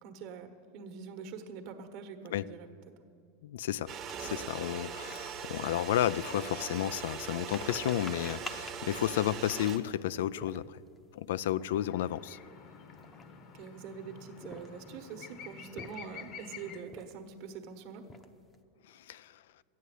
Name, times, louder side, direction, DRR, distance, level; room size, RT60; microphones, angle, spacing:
voice 1, 0.0-2.7 13.5-18.0, right 6 dB, 50° right, 6 dB, 1.3 m, -45 dB
voice 2, 3.4-3.9 4.2-10.8 11.1-12.4 18.9-19.4, left 12 dB, 80° left, 18 dB, 0.3 m, -32 dB
sound 1, 3.9-9.8, right 7 dB, 30° right, 1.0 m, -41 dB
sound 2, 4.1-11.0 11.5-11.7 11.9-12.2 12.8-13.6 14.3-15.0 15.5-16.3 16.8-17.4 17.7-18.6, left 2 dB, 15° left, 0.7 m, -49 dB
sound 3, 11.7-16.8, left 7 dB, 40° left, 1.0 m, -49 dB
13.5 x 9.4 x 8.3 m, 2.5 s
supercardioid pair, 150°, 0 cm